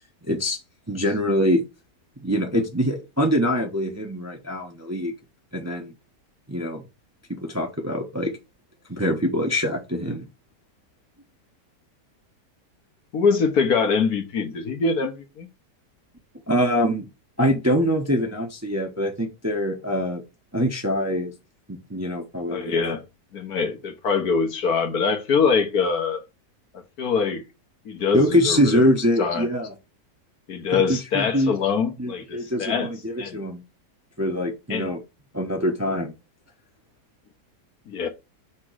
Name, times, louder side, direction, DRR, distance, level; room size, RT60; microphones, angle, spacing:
voice 1, 0.2-0.6 0.9-1.6 2.2-5.1 5.5-5.9 6.5-6.8 7.4-8.3 8.9-10.3 16.5-17.1 17.4-20.2 20.5-21.3 21.7-23.0 28.1-29.7 30.7-31.5 32.0-33.6 34.2-35.0 35.3-36.1, equal, 10° right, 0.9 m, -24 dB
voice 2, 13.1-15.5 22.5-23.0 23.3-26.2 26.7-27.4 27.9-28.9 29.2-29.5 30.5-32.9 33.2-33.4 34.7-34.9 37.9-38.1, left 5 dB, 65° left, 1.6 m, -24 dB
6.1 x 3.7 x 6.2 m
omnidirectional pair, 1.8 m